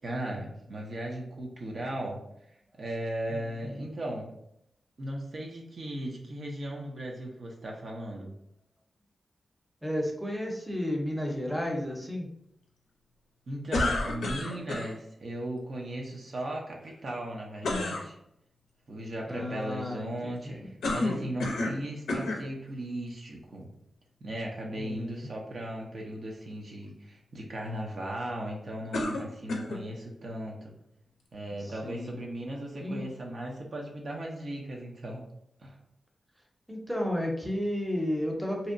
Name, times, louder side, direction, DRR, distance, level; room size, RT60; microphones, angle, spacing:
voice 1, 0.0-2.2 2.8-4.4 5.0-8.3 13.5-18.2 18.9-23.7 24.2-30.8 31.3-35.2 35.6-35.8, right 1 dB, 65° right, -1 dB, 0.5 m, -37 dB
voice 2, 3.3-3.8 9.8-12.3 19.3-20.7 24.8-25.3 31.6-32.1 32.8-33.0 36.7-38.7, left 1 dB, 5° right, 0 dB, 0.7 m, -33 dB
sound 1, 13.7-14.9 17.6-18.0 20.8-21.8 22.1-22.4 23.2-23.3 28.9-29.8, left 2 dB, 90° left, 0.4 m, -30 dB
2.7 x 2.0 x 2.5 m, 0.76 s
cardioid pair, 50°, 0 cm